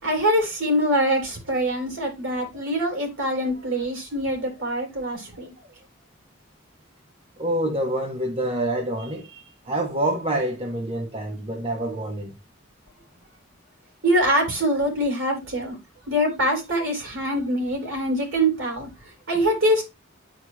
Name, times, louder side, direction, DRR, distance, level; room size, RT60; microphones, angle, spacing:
voice 1, 0.0-5.5 14.0-15.8 16.1-18.9 19.3-19.8, equal, 80° right, 3.5 m, -24 dB
voice 2, 7.4-12.3, right 1 dB, 30° right, 0.9 m, -27 dB
10.5 x 4.7 x 2.2 m
head